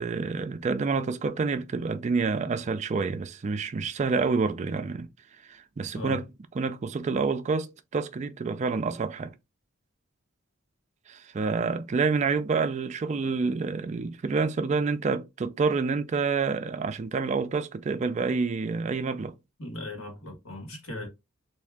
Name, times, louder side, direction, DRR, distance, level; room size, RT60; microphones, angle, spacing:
voice 1, 0.0-5.1 5.5-6.3 6.6-9.3 11.1-19.3, right 4 dB, 35° right, 0.3 m, -28 dB
voice 2, 19.6-21.1, left 1 dB, 85° left, 1.5 m, -38 dB
3.6 x 2.6 x 3.4 m
head